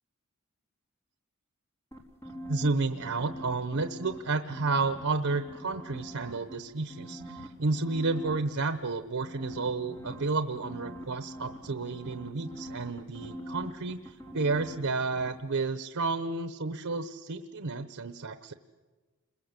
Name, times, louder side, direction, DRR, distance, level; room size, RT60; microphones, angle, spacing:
sound 1, 1.9-4.2 4.5-6.5 6.9-8.4 9.2-14.9 15.1-15.3, equal, 15° left, 3.7 m, -43 dB
voice 1, 2.5-18.5, right 3 dB, 75° right, 9 dB, 0.9 m, -31 dB
29.5 x 21.5 x 8.2 m, 1.3 s
head